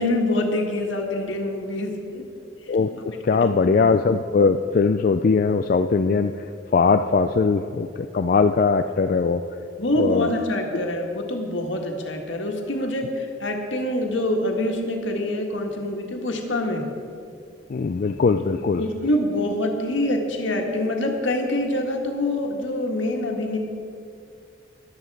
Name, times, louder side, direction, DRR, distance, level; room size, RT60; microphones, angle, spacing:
voice 1, 0.0-2.2 3.3-3.5 9.8-16.9 18.8-23.6, left 1 dB, 75° left, 2 dB, 1.7 m, -25 dB
voice 2, 3.2-6.4 6.7-9.4 10.0-10.3 17.7-18.8, left 4 dB, 45° left, 7 dB, 0.3 m, -20 dB
14.0 x 11.5 x 4.8 m, 2.4 s
head